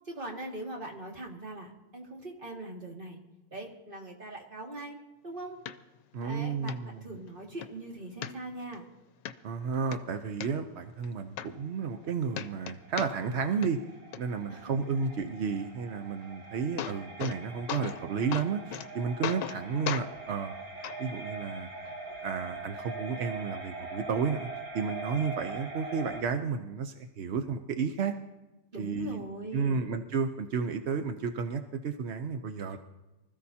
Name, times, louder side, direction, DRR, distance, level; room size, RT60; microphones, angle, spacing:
voice 1, 0.0-3.2 3.5-5.0 5.2-5.6 6.2-8.9 14.5-14.7 28.7-29.9, right 2 dB, 30° right, -1 dB, 2.3 m, -41 dB
sound 1, 5.7-5.8 6.2-6.3 6.7-6.8 7.2-7.7 8.2-8.8 9.3-9.4 9.7-10.5 11.0-11.1 11.4-12.1 12.3-13.4 13.6-14.2 16.2-16.3 16.6-17.4 17.7-18.0 18.3-18.9 19.2-19.6 19.9-20.1 20.8-21.0 21.9-22.0, left 10 dB, 75° left, 1.3 m, -36 dB
voice 2, 6.1-7.0 9.4-13.8 14.2-20.5 21.0-21.7 22.2-24.5 24.7-28.1 28.8-29.2 29.5-32.8, right 5 dB, 60° right, 6 dB, 0.7 m, -32 dB
sound 2, 11.5-26.2, right 3 dB, 85° right, 2.6 m, -42 dB
25.0 x 14.5 x 2.8 m, 1.1 s
omnidirectional pair, 1.9 m